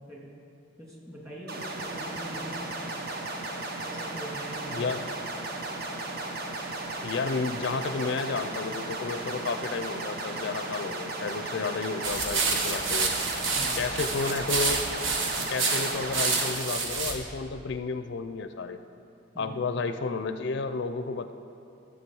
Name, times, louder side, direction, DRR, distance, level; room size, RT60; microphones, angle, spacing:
voice 1, 0.8-2.9 3.8-4.9 13.5-13.8 19.3-19.5, equal, 15° right, -4 dB, 2.5 m, -42 dB
sound 1, 1.5-16.5, right 2 dB, 55° right, 1.0 m, -35 dB
voice 2, 7.0-13.1 13.8-14.8 15.5-18.8 19.4-21.3, left 4 dB, 65° left, 10 dB, 0.4 m, -32 dB
sound 2, 12.0-17.2, right 4 dB, 80° right, 1.2 m, -28 dB
14.5 x 7.3 x 4.7 m, 2.6 s
head